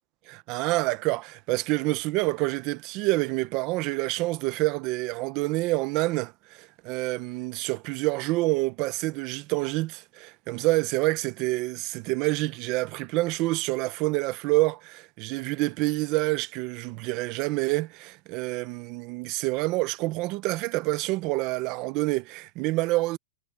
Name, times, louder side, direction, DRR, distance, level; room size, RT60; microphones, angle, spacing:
voice 1, 0.3-23.2, right 21 dB, 30° right, 0.8 m, -27 dB
supercardioid pair, 170°, 0 cm